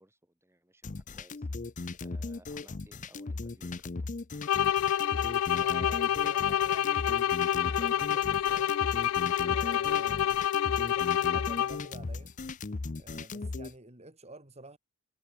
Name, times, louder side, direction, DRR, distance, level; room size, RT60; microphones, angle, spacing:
voice 1, 0.0-1.5 2.0-4.1, right 1 dB, 15° right, 6.6 m, -60 dB
sound 1, 0.8-13.7, left 3 dB, 40° left, 0.6 m, -38 dB
sound 2, 4.4-12.0, left 10 dB, 90° left, 0.3 m, -28 dB
voice 2, 5.5-8.8 9.3-12.3 12.9-14.8, right 2 dB, 30° right, 7.7 m, -50 dB
head